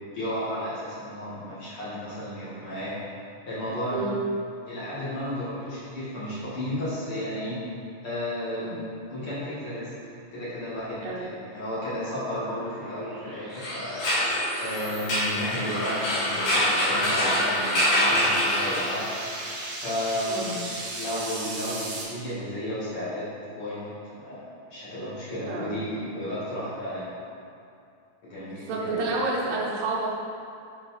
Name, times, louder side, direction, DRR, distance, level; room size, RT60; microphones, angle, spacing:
voice 1, 0.1-2.9 3.4-4.1 4.6-7.6 8.0-8.8 9.1-9.9 10.3-14.0 14.6-19.1 19.7-20.6 20.9-23.3 23.5-24.4 24.7-27.1 28.2-29.1, left 1 dB, 70° left, -11 dB, 1.3 m, -33 dB
voice 2, 3.9-4.2 8.6-8.8 11.0-11.3 20.2-20.6 25.5-25.7 28.4-30.2, right 3 dB, 85° right, -4 dB, 1.9 m, -30 dB
sound 1, 10.7-22.0, right 2 dB, 70° right, 2.8 m, -39 dB
sound 2, 13.5-19.2, equal, 55° left, 2.2 m, -25 dB
8.0 x 4.7 x 4.0 m, 2.5 s
omnidirectional pair, 5.3 m